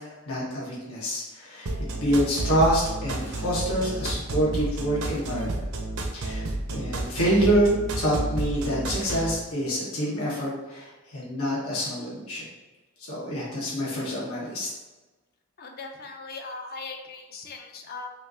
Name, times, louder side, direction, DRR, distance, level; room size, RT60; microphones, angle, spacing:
voice 1, 0.3-1.7 2.0-5.6 6.1-6.4 6.7-12.4 13.1-14.7, equal, 75° left, -6 dB, 1.3 m, -26 dB
sound 1, 1.7-9.3, right 2 dB, 75° right, 0.6 m, -31 dB
voice 2, 15.6-18.1, left 3 dB, 45° left, 3 dB, 0.5 m, -39 dB
5.4 x 2.6 x 2.7 m, 1.2 s
head